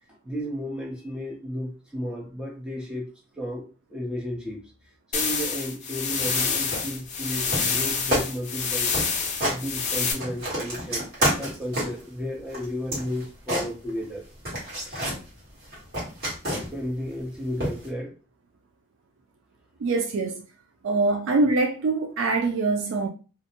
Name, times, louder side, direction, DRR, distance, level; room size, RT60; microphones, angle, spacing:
voice 1, 0.2-4.7 5.1-8.9 9.4-14.3 14.8-15.1 16.7-18.1, equal, 5° right, 0.6 m, -33 dB
sound 1, 5.1-10.1, left 5 dB, 35° left, 0.5 m, -27 dB
sound 2, 6.2-6.5 6.7-7.3 7.5-7.8 8.1-8.3 8.6-8.7 8.9-9.6 10.0-12.1 12.5-14.2 14.5-15.2 15.6-16.9 17.6-17.9, equal, 50° right, 1.3 m, -29 dB
voice 2, 19.8-20.4 20.8-23.1, right 3 dB, 85° right, 0.4 m, -24 dB
2.4 x 2.1 x 2.9 m
head